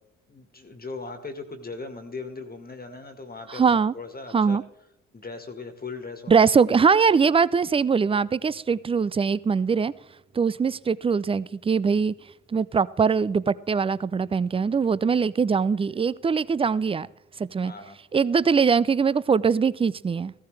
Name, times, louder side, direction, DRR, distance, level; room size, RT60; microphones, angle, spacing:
voice 1, 0.3-4.6 5.1-6.4 10.7-10.8 14.5-14.7 17.6-18.0, left 3 dB, 25° left, 7 dB, 1.7 m, -39 dB
voice 2, 3.5-3.9 4.3-4.6 6.3-9.9 10.3-12.1 12.5-17.1 17.4-17.7 18.1-20.3, right 5 dB, 15° right, 20 dB, 0.4 m, -22 dB
15.0 x 14.0 x 3.3 m, 0.83 s
hypercardioid pair, 55°, 34 cm